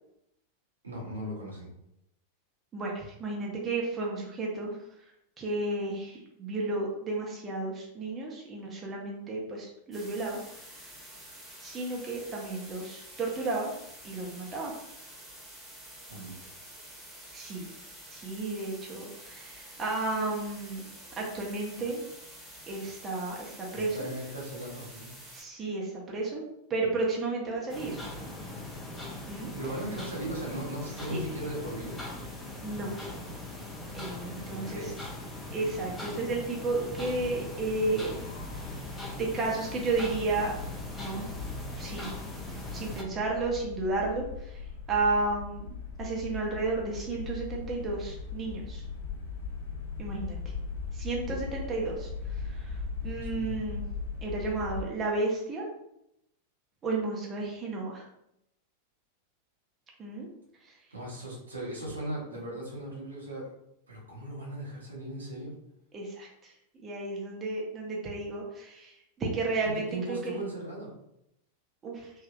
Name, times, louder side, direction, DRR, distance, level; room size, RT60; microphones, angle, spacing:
voice 1, 0.8-1.7 16.1-16.5 23.7-25.1 29.6-32.0 34.4-35.1 53.0-53.6 60.9-63.5 63.9-65.5 69.9-70.9, right 1 dB, 75° right, -3 dB, 1.0 m, -38 dB
voice 2, 2.7-4.8 5.4-10.4 11.6-13.7 14.0-14.7 17.3-17.7 18.1-20.9 21.2-22.0 22.7-24.1 25.3-26.4 26.7-28.0 29.3-29.5 31.1-31.2 32.6-33.0 33.9-34.9 35.5-38.2 38.5-38.8 39.2-40.5 41.0-41.3 41.8-42.2 42.7-44.6 44.9-45.7 46.0-48.8 50.0-50.4 50.9-53.9 54.2-55.7 56.8-58.0 60.0-60.3 60.6-60.7 65.9-66.5 66.8-70.4 71.8-72.1, right 3 dB, 25° right, -1 dB, 0.7 m, -32 dB
sound 1, 9.9-25.4, right 1 dB, 5° right, 1.2 m, -48 dB
sound 2, 27.7-43.0, left 1 dB, 10° left, 0.7 m, -40 dB
sound 3, 37.0-54.8, left 5 dB, 55° left, 0.6 m, -39 dB
3.3 x 2.7 x 2.4 m, 0.80 s
figure-of-eight pair, 90°, 0 cm